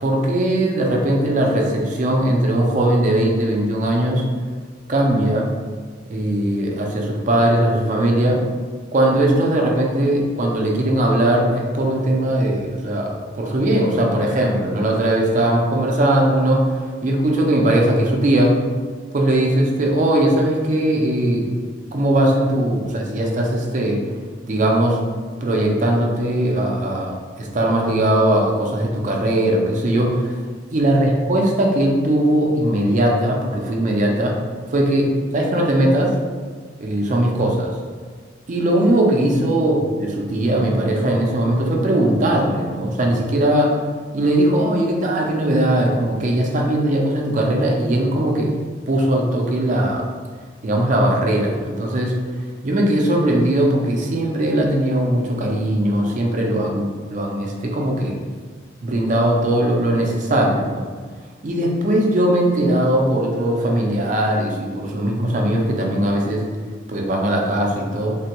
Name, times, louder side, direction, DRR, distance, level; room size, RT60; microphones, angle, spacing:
voice 1, 0.0-4.2 4.9-5.5 6.1-8.4 8.9-18.5 19.1-21.5 21.9-24.0 24.4-25.0 25.4-30.3 30.7-34.3 34.7-36.1 36.8-37.7 38.5-43.8 44.1-48.5 48.9-50.0 50.6-52.1 52.6-58.2 58.8-60.9 61.4-66.4 66.9-68.2, right 1 dB, 40° right, 0 dB, 0.4 m, -19 dB
3.3 x 2.2 x 2.8 m, 1.5 s
head